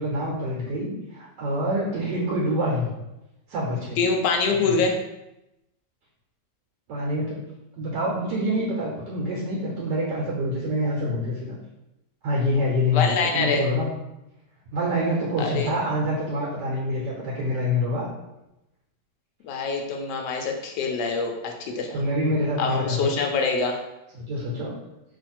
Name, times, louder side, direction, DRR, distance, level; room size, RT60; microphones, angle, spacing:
voice 1, 0.0-2.9 3.5-4.0 4.5-4.6 6.9-7.4 7.8-11.6 12.2-13.9 14.7-18.1 21.9-23.2 24.2-24.7, left 1 dB, 80° right, -3 dB, 1.4 m, -26 dB
voice 2, 4.0-5.0 12.9-13.6 15.4-15.7 19.4-22.0 22.6-23.8, left 4 dB, 85° left, 3 dB, 1.2 m, -25 dB
3.1 x 2.5 x 4.2 m, 0.92 s
omnidirectional pair, 1.8 m